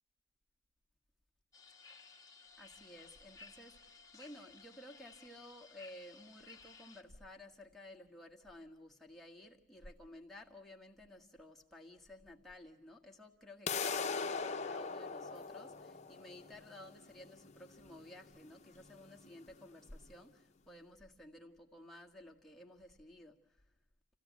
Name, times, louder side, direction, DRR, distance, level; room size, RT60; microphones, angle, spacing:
sound 1, 1.5-7.0, left 4 dB, 20° left, 1.4 m, -58 dB
voice 1, 2.6-23.4, left 1 dB, ahead, -2 dB, 1.7 m, -54 dB
sound 2, 13.7-19.6, left 5 dB, 35° left, 0.8 m, -41 dB
26.5 x 16.5 x 9.3 m, 0.92 s
head